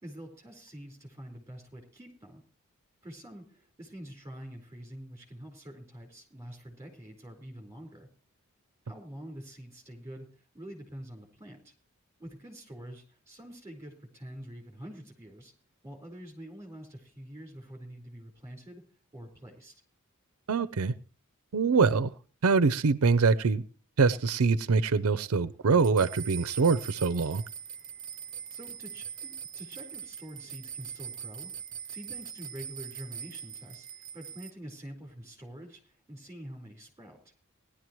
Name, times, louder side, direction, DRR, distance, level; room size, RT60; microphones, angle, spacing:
voice 1, 0.0-2.4 3.0-8.1 8.8-11.7 12.2-15.5 15.8-18.8 19.1-19.8 28.5-31.5 31.9-37.3, right 1 dB, 15° right, 2 dB, 4.3 m, -46 dB
voice 2, 20.5-20.9 21.5-22.1 22.4-23.6 24.0-27.4, right 4 dB, 80° right, 14 dB, 0.5 m, -24 dB
sound 1, 25.8-34.5, right 8 dB, 40° right, 0.7 m, -42 dB
18.5 x 11.5 x 3.1 m, 0.38 s
head